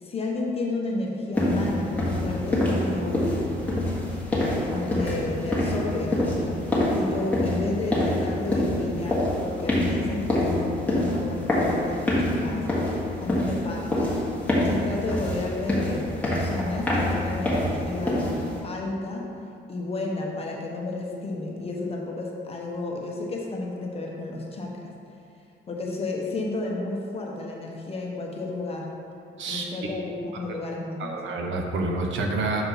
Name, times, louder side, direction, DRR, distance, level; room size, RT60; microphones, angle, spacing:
voice 1, 0.0-3.4 4.7-12.7 13.2-14.0 14.6-18.4 18.6-19.3 19.7-24.9 25.7-28.9 29.5-31.2, left 2 dB, 30° left, -1 dB, 1.0 m, -32 dB
sound 1, 1.3-18.6, left 1 dB, 5° left, 1.5 m, -26 dB
voice 2, 31.0-32.6, right 3 dB, 70° right, 1 dB, 0.9 m, -28 dB
6.8 x 4.4 x 5.5 m, 2.5 s
cardioid pair, 155°, 20 cm